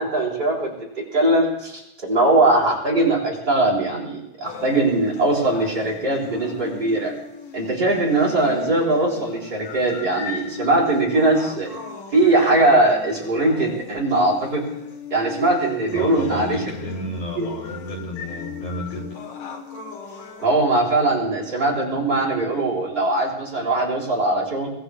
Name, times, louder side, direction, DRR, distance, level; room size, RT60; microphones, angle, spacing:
voice 1, 0.0-7.1 7.5-11.7 12.1-14.6 15.1-16.6 17.4-17.5 20.4-24.7, right 2 dB, 30° right, -4 dB, 4.6 m, -20 dB
sound 1, 4.5-20.4, left 6 dB, 90° left, 3.2 m, -38 dB
voice 2, 15.9-19.1, left 1 dB, 70° left, -2 dB, 4.7 m, -31 dB
23.5 x 20.0 x 2.4 m, 0.84 s
omnidirectional pair, 3.6 m